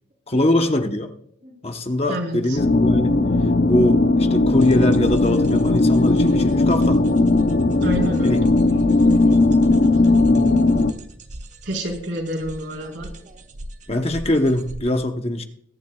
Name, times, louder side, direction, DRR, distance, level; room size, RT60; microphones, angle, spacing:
voice 1, 0.3-1.1 1.6-3.2 3.7-7.0 8.2-8.4 13.9-15.4, left 1 dB, 30° left, 5 dB, 0.9 m, -22 dB
voice 2, 2.1-2.6 7.8-8.5 9.1-9.4 11.6-13.1, right 1 dB, 70° right, 0 dB, 4.4 m, -29 dB
sound 1, 2.6-10.9, left 2 dB, 55° left, 0.7 m, -17 dB
sound 2, 4.6-14.8, right 1 dB, 40° right, 1.0 m, -38 dB
22.5 x 10.5 x 2.3 m, 0.67 s
head